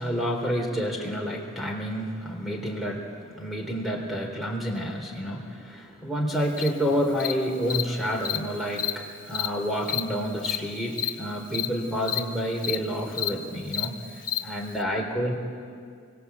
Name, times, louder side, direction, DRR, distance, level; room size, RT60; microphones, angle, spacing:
voice 1, 0.0-14.0 14.4-15.3, equal, ahead, 1 dB, 3.8 m, -29 dB
Cricket, 6.6-6.7 7.2-7.3 7.7-7.8 8.2-8.4 8.7-8.9 9.3-9.5 9.9-10.0 10.4-10.6 10.9-11.1 11.5-11.7 12.0-12.2 12.6-12.8 13.1-13.3 13.7-13.9 14.2-14.4, left 11 dB, 40° left, 1.4 m, -28 dB
27.5 x 24.0 x 8.5 m, 2.2 s
head